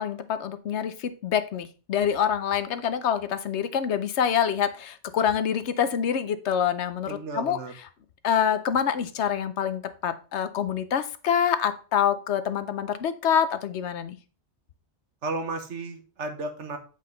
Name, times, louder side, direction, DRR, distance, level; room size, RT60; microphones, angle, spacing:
voice 1, 0.0-7.6 8.2-14.2, left 8 dB, 75° left, 11 dB, 1.0 m, -26 dB
voice 2, 7.1-7.7 15.2-16.8, right 3 dB, 90° right, 6 dB, 1.4 m, -33 dB
7.6 x 5.1 x 3.9 m, 0.36 s
omnidirectional pair, 1.2 m